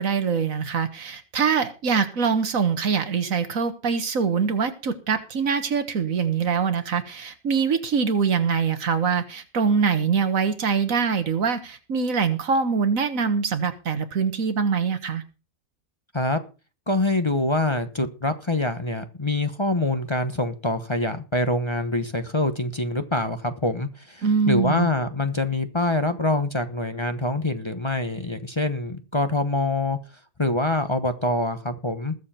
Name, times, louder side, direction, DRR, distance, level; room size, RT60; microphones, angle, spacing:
voice 1, 0.0-15.2 24.2-24.9, right 6 dB, 80° right, 10 dB, 1.8 m, -23 dB
voice 2, 16.9-30.0 30.4-32.1, left 2 dB, 25° left, 9 dB, 1.0 m, -25 dB
20.5 x 7.3 x 4.3 m, 0.32 s
omnidirectional pair, 1.4 m